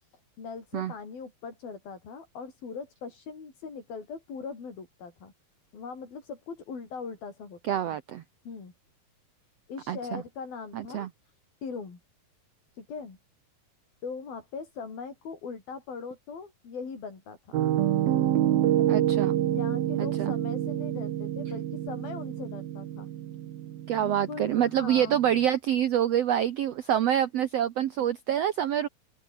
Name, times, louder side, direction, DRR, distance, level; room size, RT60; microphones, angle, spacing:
voice 1, 0.4-5.3 5.7-8.0 8.5-8.7 9.7-11.1 11.6-12.0 12.7-13.2 14.0-17.7 18.8-19.0 19.5-23.1 24.0-25.2 28.0-28.1, left 5 dB, 85° left, 7.5 m, -40 dB
voice 2, 7.7-8.2 9.9-10.2 10.7-11.1 18.9-19.3 20.0-20.3 23.9-28.9, right 10 dB, 70° right, 1.5 m, -26 dB
Piano, 17.5-25.4, right 12 dB, 90° right, 3.4 m, -27 dB
open air
omnidirectional pair, 4.1 m